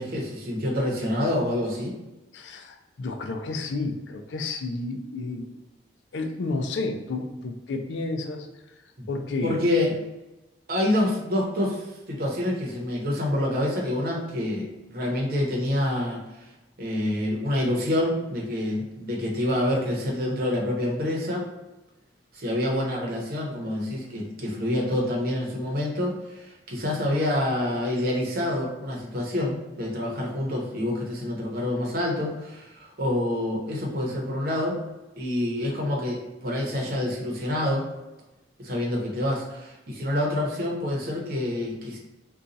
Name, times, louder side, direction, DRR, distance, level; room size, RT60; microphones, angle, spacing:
voice 1, 0.0-2.0 9.4-10.0 10.7-16.2 16.8-21.4 22.3-34.8 35.2-37.8 38.6-42.0, left 1 dB, 55° right, -2 dB, 0.8 m, -27 dB
voice 2, 2.3-5.5 6.1-8.5 9.1-9.6, left 3 dB, 85° left, 5 dB, 0.4 m, -31 dB
2.6 x 2.3 x 3.9 m, 1.0 s
head